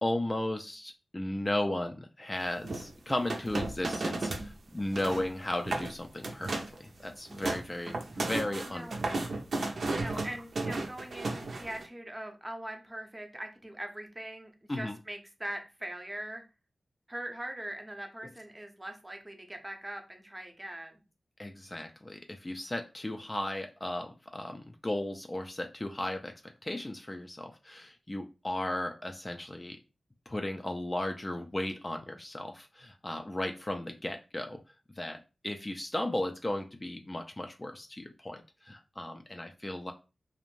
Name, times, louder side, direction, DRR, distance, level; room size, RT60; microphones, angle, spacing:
voice 1, 0.0-9.2 9.6-10.3 14.7-15.0 21.4-26.3 26.6-29.8 30.3-34.6 35.0-39.9, left 1 dB, 25° left, 5 dB, 0.3 m, -35 dB
sound 1, 2.6-4.5 4.8-5.3 5.6-5.9 6.2-6.8 7.1-11.8, right 2 dB, 75° right, 0.5 m, -34 dB
voice 2, 8.7-9.2 9.9-16.4 17.1-20.9, right 1 dB, 20° right, 4 dB, 0.6 m, -42 dB
2.5 x 2.0 x 3.0 m, 0.30 s
wide cardioid pair, 65°, 0 cm